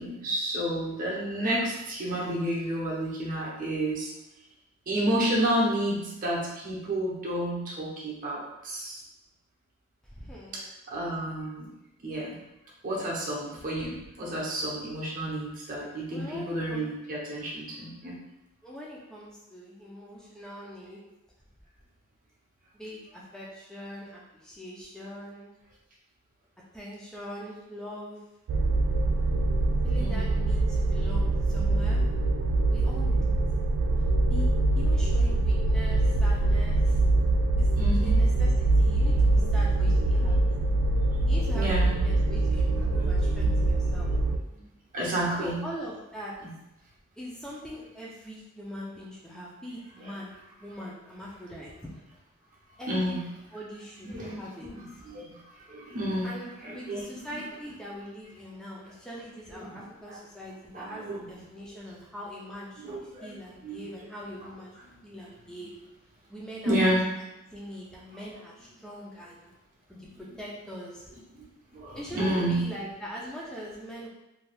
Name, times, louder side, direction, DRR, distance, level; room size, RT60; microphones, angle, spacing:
voice 1, 0.0-4.1 4.9-9.0 10.9-11.7 12.0-12.4 12.8-18.2 30.0-30.3 37.8-38.2 39.4-39.5 40.0-40.3 41.5-42.0 43.0-43.3 44.5-45.6 50.0-50.1 52.9-53.2 54.0-56.3 56.6-57.1 59.6-60.2 60.7-61.3 62.8-63.3 63.6-63.9 66.6-67.1 71.3-71.5 71.7-72.6, right 1 dB, 40° right, -5 dB, 0.7 m, -31 dB
voice 2, 10.0-10.7 16.1-16.9 18.6-21.0 22.7-25.5 26.7-28.2 29.8-32.0 32.7-33.3 33.6-33.7 34.0-34.5 34.8-37.0 37.6-40.6 41.3-44.1 45.4-46.4 47.2-52.0 52.8-53.2 53.5-54.7 56.2-64.7 65.0-65.7 66.3-67.0 67.5-69.5 69.9-71.1 71.9-74.1, equal, 5° left, -5 dB, 0.4 m, -42 dB
sound 1, 28.5-44.4, right 2 dB, 80° right, 0.3 m, -24 dB
2.7 x 2.2 x 3.2 m, 0.93 s
head